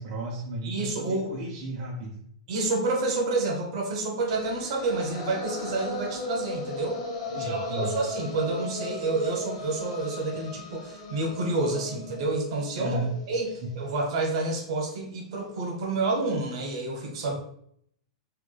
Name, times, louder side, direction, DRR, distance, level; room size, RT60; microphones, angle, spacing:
voice 1, 0.0-2.2 7.3-8.0 12.8-13.2 13.6-13.7 17.3-17.4, right 2 dB, 45° right, -3 dB, 0.7 m, -34 dB
voice 2, 0.6-1.3 2.5-7.0 7.4-13.0 13.3-17.4, right 2 dB, 60° right, 1 dB, 1.0 m, -29 dB
sound 1, 4.3-14.4, left 2 dB, 75° left, 1.0 m, -37 dB
3.3 x 3.2 x 2.2 m, 0.68 s
hypercardioid pair, 135°, 3 cm